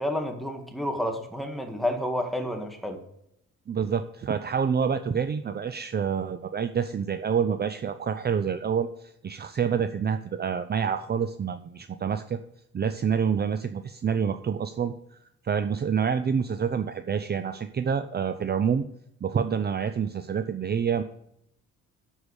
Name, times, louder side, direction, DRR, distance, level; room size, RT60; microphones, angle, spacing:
voice 1, 0.0-3.0, left 1 dB, ahead, 4 dB, 1.9 m, -30 dB
voice 2, 3.7-12.4 12.7-14.9 15.4-18.8 19.2-21.0, right 7 dB, 35° right, 9 dB, 0.6 m, -27 dB
12.0 x 4.9 x 6.5 m, 0.76 s
cardioid pair, 90°, 30 cm